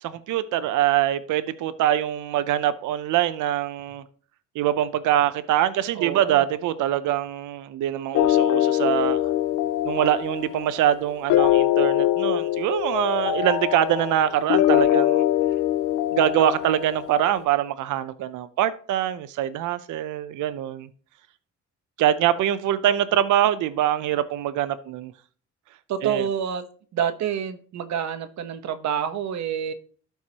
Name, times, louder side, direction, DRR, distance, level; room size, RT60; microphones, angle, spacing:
voice 1, 0.0-4.0 4.6-9.3 9.8-15.2 16.1-20.9 22.0-25.1 26.0-26.2, right 11 dB, 80° right, 0.6 m, -24 dB
voice 2, 5.9-6.5 25.9-26.6 26.9-29.7, right 8 dB, 65° right, 1.0 m, -27 dB
sound 1, 8.1-17.3, left 13 dB, 85° left, 0.5 m, -23 dB
12.5 x 4.6 x 2.9 m
cardioid pair, 90°, 30 cm